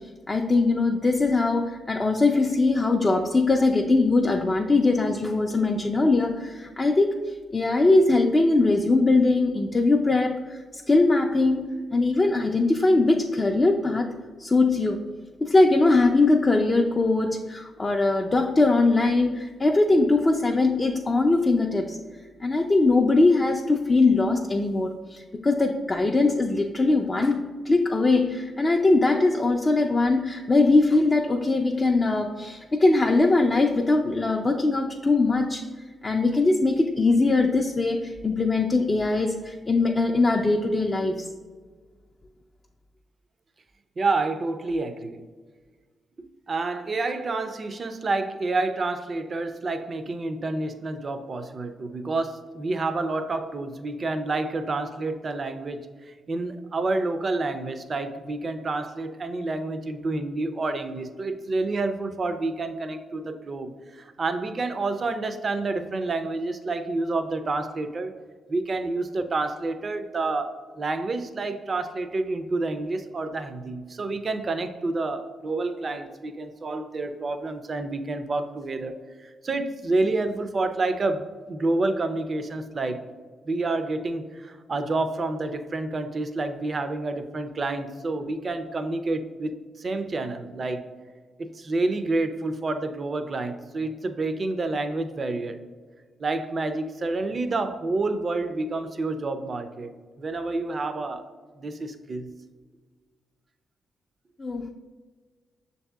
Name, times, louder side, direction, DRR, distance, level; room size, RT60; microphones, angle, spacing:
voice 1, 0.3-14.1 14.4-15.0 15.4-22.0 22.4-35.6 36.0-41.3 104.4-104.7, left 3 dB, 30° left, 1 dB, 0.3 m, -21 dB
voice 2, 44.0-45.2 46.5-68.1 68.5-83.0 83.5-90.9 91.4-95.6 96.2-99.9 100.2-101.2 101.6-102.3, right 3 dB, 50° right, 9 dB, 0.4 m, -29 dB
6.4 x 2.7 x 2.3 m, 1.5 s
supercardioid pair, 50°, 0 cm